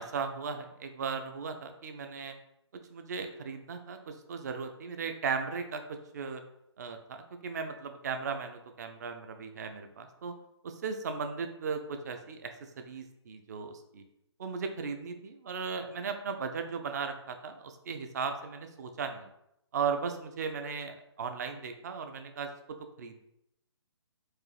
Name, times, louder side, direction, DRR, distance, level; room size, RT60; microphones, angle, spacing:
voice 1, 0.0-2.3 2.9-5.8 6.1-6.4 6.8-10.3 10.6-14.0 14.4-19.3 19.7-22.5 23.0-23.2, right 5 dB, 35° right, 7 dB, 0.4 m, -37 dB
4.6 x 2.4 x 3.2 m, 0.81 s
figure-of-eight pair, 135°, 15 cm